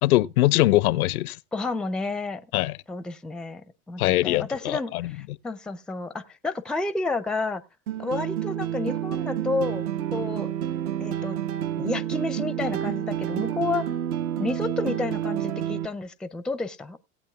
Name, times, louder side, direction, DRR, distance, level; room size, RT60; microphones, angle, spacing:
voice 1, 0.0-1.4 2.5-2.8 4.0-5.1, left 16 dB, 75° left, 0.5 m, -22 dB
voice 2, 1.5-2.4 2.9-7.6 8.0-10.5 11.0-11.4 11.8-13.9 14.4-17.0, left 3 dB, ahead, 0.4 m, -30 dB
sound 1, 7.9-15.9, right 11 dB, 75° right, 1.1 m, -29 dB
18.0 x 8.5 x 2.3 m
hypercardioid pair, 85°, 44 cm